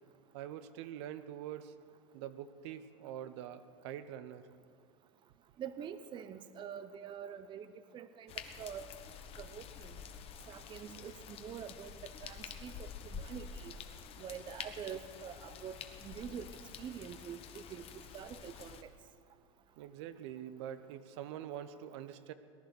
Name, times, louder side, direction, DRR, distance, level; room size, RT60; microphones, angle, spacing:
voice 1, 0.3-1.7 2.1-4.5 19.8-22.3, right 10 dB, 70° right, 11 dB, 0.9 m, -45 dB
voice 2, 5.6-8.3 8.6-8.9 9.4-10.0 10.5-13.7 14.2-17.9 18.1-18.9, right 8 dB, 30° right, 12 dB, 0.7 m, -46 dB
sound 1, 8.3-18.8, left 7 dB, 40° left, 1.2 m, -48 dB
19.0 x 10.5 x 6.6 m, 2.3 s
supercardioid pair, 110°, 15 cm